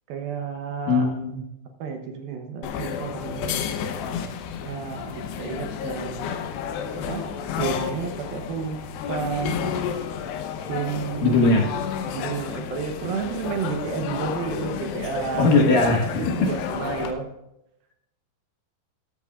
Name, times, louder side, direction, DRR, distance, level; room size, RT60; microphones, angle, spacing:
voice 1, 0.1-1.1 1.8-3.7 4.6-6.3 6.9-7.2 7.6-8.8 9.1-9.7 10.7-11.5 12.1-15.5 16.2-17.3, right 6 dB, 70° right, 4 dB, 2.6 m, -31 dB
voice 2, 0.9-1.4 11.2-11.7 15.4-16.3, left 3 dB, 60° left, 0 dB, 2.8 m, -19 dB
sound 1, 2.6-17.1, left 7 dB, 85° left, 3.1 m, -31 dB
14.0 x 13.0 x 2.4 m, 0.85 s
omnidirectional pair, 4.8 m